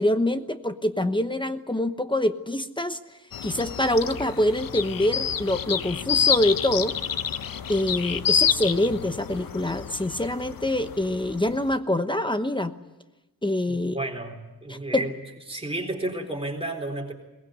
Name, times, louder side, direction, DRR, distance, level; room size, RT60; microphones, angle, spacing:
voice 1, 0.0-3.0 3.4-6.9 7.7-12.7 13.4-14.0 14.7-15.1, left 1 dB, 15° left, 9 dB, 1.0 m, -25 dB
sound 1, 3.3-11.7, left 8 dB, 65° left, 0.8 m, -28 dB
voice 2, 13.7-15.1 15.5-17.1, right 2 dB, 15° right, 1 dB, 4.0 m, -32 dB
22.0 x 19.0 x 9.6 m, 1.1 s
wide cardioid pair, 125°, 37 cm